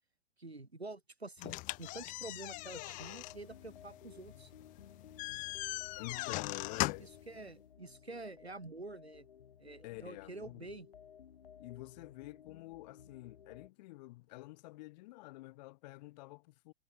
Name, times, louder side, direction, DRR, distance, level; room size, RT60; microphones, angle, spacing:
voice 1, 0.4-4.5 7.0-9.3 9.6-10.9, right 2 dB, 85° right, 4.5 m, -48 dB
sound 1, 1.4-7.2, left 22 dB, 25° left, 0.7 m, -40 dB
sound 2, 2.5-13.7, left 8 dB, 65° left, 7.0 m, -57 dB
voice 2, 6.0-7.1 9.8-10.7 11.6-16.7, left 21 dB, 45° left, 2.6 m, -48 dB
figure-of-eight pair, 105°, 31 cm